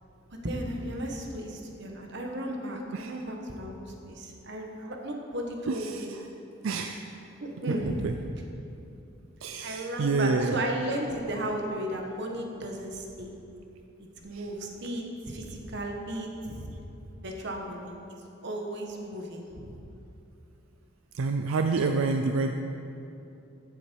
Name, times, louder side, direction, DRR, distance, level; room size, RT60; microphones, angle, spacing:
voice 1, 0.4-6.1 7.4-8.0 9.6-13.3 14.2-16.7 17.2-17.9 18.4-19.7 21.8-21.9, right 1 dB, 60° right, 2 dB, 1.3 m, -35 dB
voice 2, 5.7-6.2 6.6-7.0 7.7-8.1 9.4-10.6 14.3-14.4 21.1-22.5, right 4 dB, 85° right, 6 dB, 0.5 m, -28 dB
14.5 x 7.1 x 4.6 m, 2.8 s
head